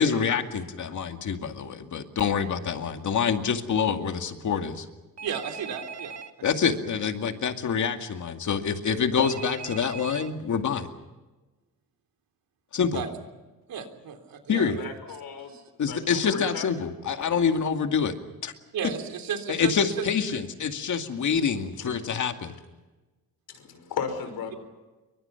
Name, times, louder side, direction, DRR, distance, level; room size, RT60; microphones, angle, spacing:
voice 1, 0.0-4.9 6.4-10.9 12.7-13.0 14.5-14.8 15.8-18.1 18.4-18.5 19.5-22.6, left 6 dB, 55° left, 6 dB, 2.3 m, -26 dB
Telephone, 5.2-6.3 9.2-10.3, right 5 dB, 50° right, 1.6 m, -39 dB
voice 2, 5.2-6.2 12.9-13.1 13.7-14.9 15.5-15.7 18.7-20.1, right 7 dB, 75° right, 5 dB, 3.7 m, -34 dB
voice 3, 14.8-15.5 15.9-16.7 21.8-21.9 23.5-24.6, left 6 dB, 85° left, 8 dB, 5.7 m, -35 dB
28.5 x 24.0 x 5.9 m, 1.2 s
wide cardioid pair, 145°, 35 cm